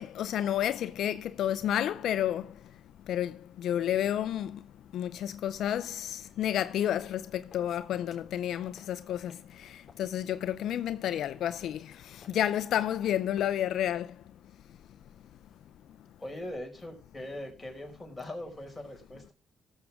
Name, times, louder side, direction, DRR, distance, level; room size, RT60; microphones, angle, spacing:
voice 1, 0.0-2.8 3.0-4.7 4.9-14.2, left 11 dB, 75° left, 0.5 m, -31 dB
light footsteps on concrete walking, 7.5-13.8, left 5 dB, 40° left, 3.7 m, -60 dB
voice 2, 16.2-19.3, left 1 dB, 10° left, 5.2 m, -41 dB
17.5 x 7.3 x 3.6 m
cardioid pair, 90°, 0 cm